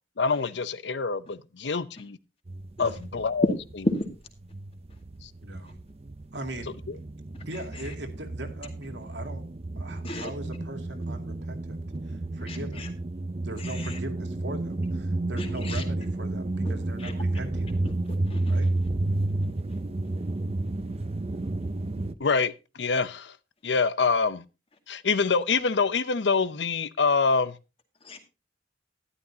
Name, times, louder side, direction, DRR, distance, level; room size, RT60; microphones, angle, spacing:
voice 1, 0.2-2.2 2.8-3.4 5.2-5.3 6.9-7.0 22.2-23.4 23.6-24.4 24.9-27.5, left 4 dB, 80° left, 0.7 m, -25 dB
sound 1, 2.5-4.1 4.4-22.1, right 2 dB, 35° right, 0.6 m, -31 dB
voice 2, 5.4-5.8 6.3-6.8 7.4-9.5 9.8-12.9 13.4-17.8 18.5-18.7, right 1 dB, 90° right, 2.3 m, -40 dB
voice 3, 7.3-7.9 10.0-10.3 12.5-12.9 13.6-14.0 15.4-15.8 16.6-16.7 17.0-17.1 18.0-18.6 19.7-19.8 28.0-28.3, left 1 dB, 35° left, 2.1 m, -32 dB
12.5 x 11.5 x 2.8 m
head